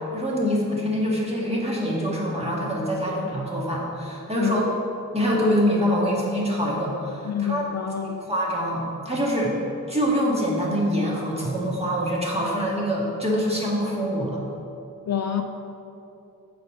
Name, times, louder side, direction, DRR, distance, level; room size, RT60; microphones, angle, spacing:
voice 1, 0.1-4.7 5.1-7.6 8.0-9.5 9.9-14.4, equal, 20° right, -5 dB, 1.7 m, -25 dB
voice 2, 4.4-4.8 7.3-8.2 15.1-15.4, left 9 dB, 55° left, 6 dB, 0.4 m, -28 dB
8.0 x 3.4 x 6.5 m, 2.8 s
wide cardioid pair, 90°, 33 cm